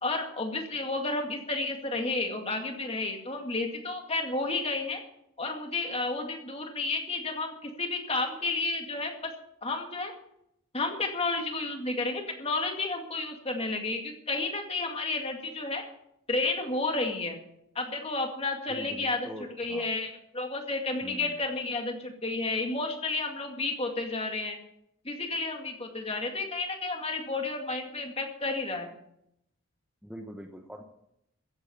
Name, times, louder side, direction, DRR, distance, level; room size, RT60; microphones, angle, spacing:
voice 1, 0.0-5.0 5.4-9.3 9.6-10.1 10.7-15.8 16.3-17.4 17.8-19.3 19.6-24.6 25.0-28.9, left 3 dB, 25° left, 4 dB, 2.1 m, -31 dB
voice 2, 18.7-19.9 21.0-21.4 30.0-30.8, equal, 5° right, 3 dB, 0.9 m, -43 dB
15.0 x 8.7 x 7.0 m, 0.78 s
head